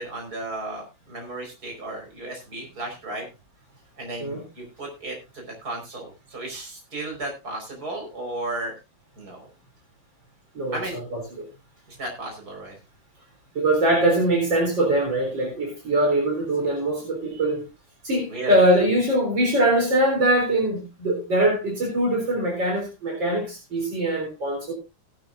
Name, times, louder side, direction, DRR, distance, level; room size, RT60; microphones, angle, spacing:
voice 1, 0.0-3.3 4.0-8.7 9.2-9.4 10.7-11.0 12.0-12.8 18.3-18.6, right 2 dB, 50° right, 2 dB, 5.2 m, -34 dB
voice 2, 10.5-11.5 13.5-17.6 18.0-24.7, right 1 dB, 70° right, 1 dB, 4.5 m, -22 dB
17.5 x 11.5 x 2.5 m, 0.26 s
omnidirectional pair, 2.1 m